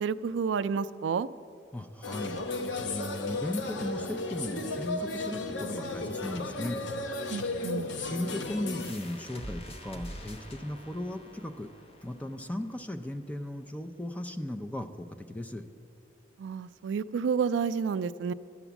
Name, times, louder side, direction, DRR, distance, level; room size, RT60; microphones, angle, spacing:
voice 1, 0.0-1.3 7.3-7.9 16.4-18.3, right 6 dB, 90° right, 15 dB, 0.3 m, -30 dB
voice 2, 1.7-6.8 8.0-11.7 12.0-15.6, left 1 dB, 10° left, 7 dB, 0.4 m, -37 dB
sound 1, 2.0-8.9, left 2 dB, 85° left, 0.7 m, -34 dB
sound 2, 8.8-14.2, equal, 35° left, 0.9 m, -46 dB
11.0 x 7.2 x 6.9 m, 2.6 s
head